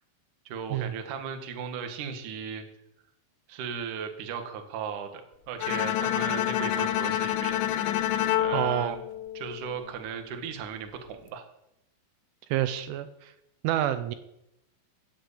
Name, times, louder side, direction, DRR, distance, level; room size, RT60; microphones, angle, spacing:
voice 1, 0.5-2.6 3.5-5.2 5.5-7.6 8.4-9.0 9.3-11.4, right 7 dB, 60° right, 5 dB, 2.2 m, -36 dB
Bowed string instrument, 5.6-9.8, left 12 dB, 80° left, 2.9 m, -28 dB
voice 2, 8.5-9.0 12.5-13.3 13.6-14.2, right 12 dB, 80° right, 11 dB, 3.2 m, -28 dB
13.0 x 7.9 x 8.3 m, 0.83 s
omnidirectional pair, 5.7 m